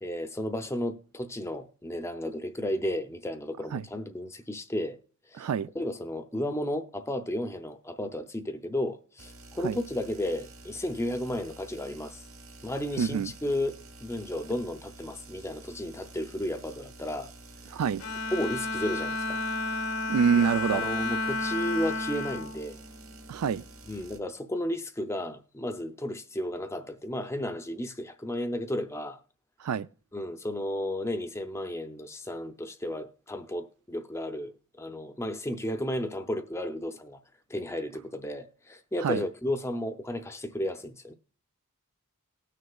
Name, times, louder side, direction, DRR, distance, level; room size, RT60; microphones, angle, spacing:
voice 1, 0.0-5.0 5.3-5.5 5.7-12.2 12.6-17.3 18.3-19.4 20.4-22.8 23.9-29.2 30.1-37.2 37.5-41.1, left 1 dB, 10° left, 0.5 m, -33 dB
voice 2, 5.4-5.7 9.6-9.8 13.0-13.3 17.7-18.0 20.1-20.8 23.3-23.6 29.6-29.9 39.0-39.2, right 6 dB, 85° right, 0.4 m, -26 dB
sound 1, 9.2-24.2, right 2 dB, 60° right, 1.2 m, -50 dB
Bowed string instrument, 18.0-23.5, left 2 dB, 75° left, 1.0 m, -32 dB
19.0 x 6.5 x 2.3 m
head